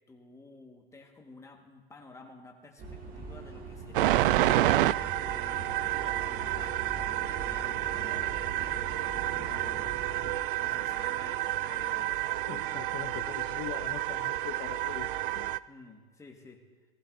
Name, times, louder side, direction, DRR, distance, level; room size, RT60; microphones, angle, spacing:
voice 1, 0.1-4.9 5.2-5.9 6.2-10.0 10.6-12.2 12.5-12.8 15.7-16.6, left 3 dB, 10° left, 2 dB, 1.5 m, -51 dB
sound 1, 2.8-10.4, right 3 dB, 25° right, 2.0 m, -42 dB
sound 2, 3.9-15.6, right 15 dB, 55° right, 0.4 m, -30 dB
voice 2, 12.5-15.5, left 14 dB, 35° left, 10 dB, 0.7 m, -42 dB
19.0 x 14.5 x 2.7 m, 1.4 s
hypercardioid pair, 125°, 32 cm